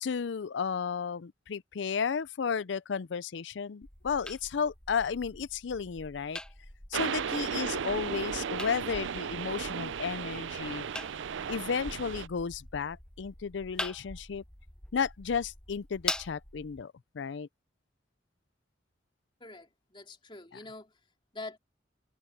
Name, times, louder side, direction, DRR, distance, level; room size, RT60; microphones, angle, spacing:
voice 1, 0.0-6.4 6.9-10.8 11.5-14.4 14.9-17.5 20.5-20.6, left 6 dB, 65° left, 0.5 m, -33 dB
sound 1, 3.8-16.8, left 1 dB, 5° left, 0.6 m, -43 dB
sound 2, 6.9-12.3, right 7 dB, 75° right, 0.4 m, -35 dB
voice 2, 19.4-20.9 21.3-21.6, left 2 dB, 25° left, 2.8 m, -45 dB
head